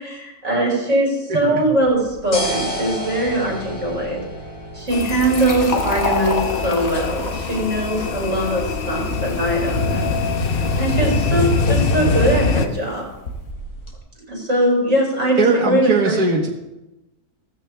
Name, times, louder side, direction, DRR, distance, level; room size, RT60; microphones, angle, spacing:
voice 1, 0.0-4.2 4.7-10.2 10.5-13.0 14.3-16.1, right 1 dB, 50° right, -2 dB, 5.8 m, -21 dB
voice 2, 1.3-1.6 15.4-16.5, right 3 dB, 80° right, 0 dB, 1.9 m, -20 dB
sound 1, 1.8-13.9, equal, 80° left, 3.2 m, -34 dB
Fill (with liquid), 4.9-12.2, left 2 dB, 60° left, 2.3 m, -31 dB
sound 2, 4.9-12.7, left 4 dB, 45° left, 1.0 m, -23 dB
17.0 x 15.0 x 3.4 m, 0.97 s
omnidirectional pair, 1.6 m